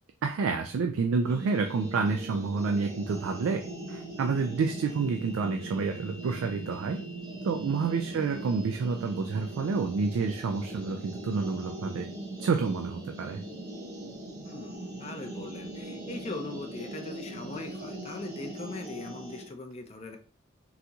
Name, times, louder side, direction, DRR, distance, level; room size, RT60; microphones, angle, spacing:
voice 1, 0.2-7.0 7.4-12.1 12.4-13.4, right 4 dB, 90° right, 5 dB, 0.3 m, -29 dB
sound 1, 1.2-19.5, right 2 dB, 45° right, 1.3 m, -40 dB
voice 2, 8.1-8.5 14.4-20.2, left 2 dB, 30° left, 6 dB, 0.4 m, -40 dB
3.9 x 2.8 x 2.3 m, 0.39 s
head